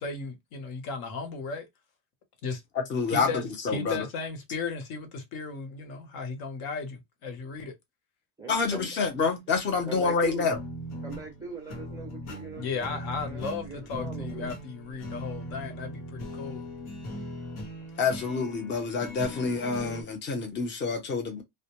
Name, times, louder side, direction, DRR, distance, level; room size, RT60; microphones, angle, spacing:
voice 1, 0.0-1.7 2.4-2.6 3.1-7.7 12.5-16.7, left 4 dB, 65° left, 0.9 m, -35 dB
voice 2, 2.7-4.1 8.5-10.6 18.0-21.4, left 4 dB, 30° left, 0.6 m, -28 dB
voice 3, 8.4-8.9 9.9-10.5 11.0-14.5, right 4 dB, 10° right, 0.4 m, -40 dB
sound 1, 10.5-20.0, equal, 90° left, 1.1 m, -39 dB
2.1 x 2.1 x 2.9 m
cardioid pair, 165°, 40 cm